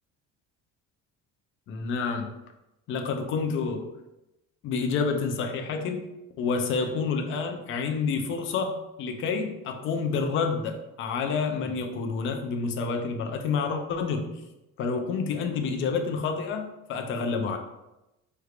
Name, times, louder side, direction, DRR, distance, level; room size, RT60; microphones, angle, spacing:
voice 1, 1.7-2.3 2.9-3.9 4.6-6.1 6.4-14.4 14.8-17.6, left 5 dB, 40° left, 4 dB, 0.4 m, -29 dB
4.4 x 3.2 x 2.4 m, 0.95 s
cardioid pair, 180°, 30 cm